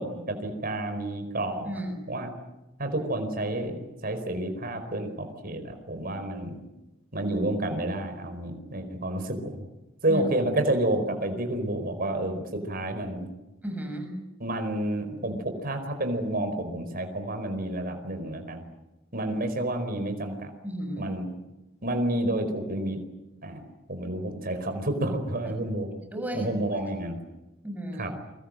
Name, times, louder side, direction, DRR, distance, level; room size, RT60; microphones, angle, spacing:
voice 1, 0.0-1.7 2.1-2.3 2.8-6.6 7.1-9.6 10.0-13.3 14.4-18.6 19.1-20.5 21.0-21.3 21.8-23.0 23.4-23.6 23.9-25.9 26.3-27.2 28.0-28.1, right 1 dB, 45° right, 6 dB, 4.8 m, -30 dB
voice 2, 1.6-1.9 10.1-10.2 13.6-14.2 20.6-21.1 26.1-26.8 27.6-28.1, equal, 10° right, 4 dB, 6.8 m, -34 dB
29.5 x 24.0 x 7.8 m, 1.0 s
head